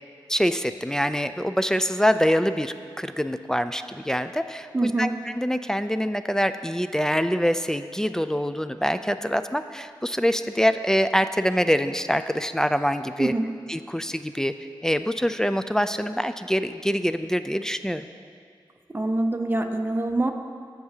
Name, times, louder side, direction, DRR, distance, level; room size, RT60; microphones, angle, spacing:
voice 1, 0.3-13.3 13.7-14.6 14.8-18.1, equal, 5° left, 10 dB, 0.4 m, -25 dB
voice 2, 4.7-5.2 13.2-13.6 18.9-20.3, right 2 dB, 25° right, 4 dB, 0.7 m, -25 dB
15.5 x 5.9 x 2.8 m, 2.1 s
cardioid pair, 55°, 9 cm